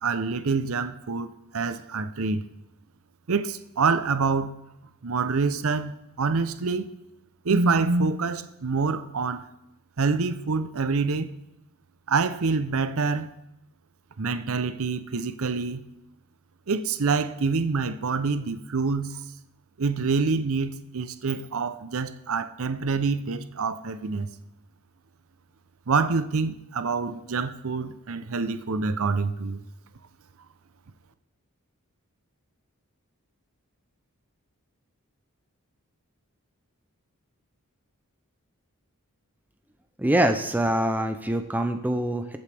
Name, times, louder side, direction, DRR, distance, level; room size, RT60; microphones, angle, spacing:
voice 1, 0.0-2.4 3.3-4.5 5.0-6.8 7.4-9.5 10.0-11.3 12.1-13.3 14.2-15.8 16.7-19.2 19.8-24.3 25.9-29.6, right 4 dB, 65° right, 11 dB, 0.7 m, -26 dB
voice 2, 40.0-42.4, right 1 dB, 5° right, 6 dB, 0.5 m, -24 dB
21.0 x 8.1 x 3.5 m, 0.87 s
head